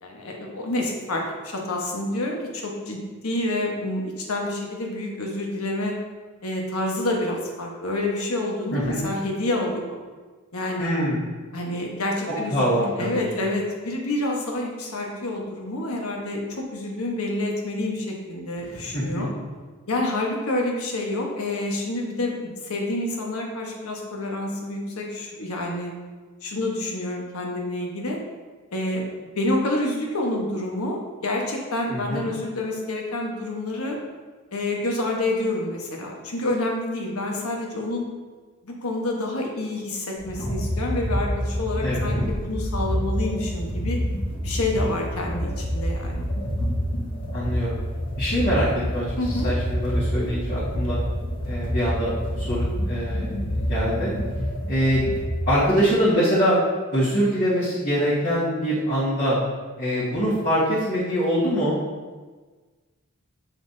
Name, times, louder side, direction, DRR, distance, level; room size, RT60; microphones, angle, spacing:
voice 1, 0.0-6.0 6.4-10.0 10.5-11.0 11.5-19.3 19.9-25.9 26.4-28.2 28.7-34.0 34.5-38.1 38.6-44.0 44.4-46.3 49.2-49.5, left 1 dB, 85° left, 0 dB, 1.3 m, -28 dB
voice 2, 8.7-9.0 10.8-11.2 12.3-13.3 18.6-19.2 31.9-32.3 41.8-42.1 47.3-47.8 48.2-51.0 51.4-54.1 54.7-55.0 55.5-56.6 56.9-59.4 59.8-61.8, equal, 40° left, -12 dB, 1.8 m, -24 dB
sound 1, 40.2-55.8, equal, 55° left, 1.6 m, -27 dB
7.4 x 5.8 x 2.8 m, 1.4 s
head